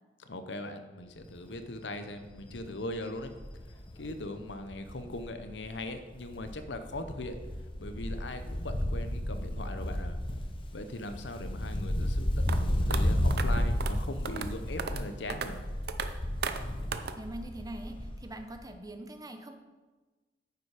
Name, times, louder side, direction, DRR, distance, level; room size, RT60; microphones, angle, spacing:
voice 1, 0.3-3.3 4.0-7.4 7.8-10.2 10.7-15.6, left 1 dB, 85° left, 8 dB, 0.9 m, -40 dB
Wind, 1.2-1.5 1.9-2.0 2.3-5.8 6.1-18.3 18.6-18.7, left 1 dB, 30° left, 1.0 m, -33 dB
sound 1, 12.5-12.6 12.9-13.0 13.3-13.5 13.8-14.0 14.3-14.5 14.8-15.0 15.3-15.5 15.9-16.1 16.4-16.6 16.9-17.1, right 6 dB, 60° right, 0.6 m, -34 dB
voice 2, 17.2-19.6, right 1 dB, 20° right, 6 dB, 0.7 m, -43 dB
9.3 x 7.0 x 4.9 m, 1.3 s
head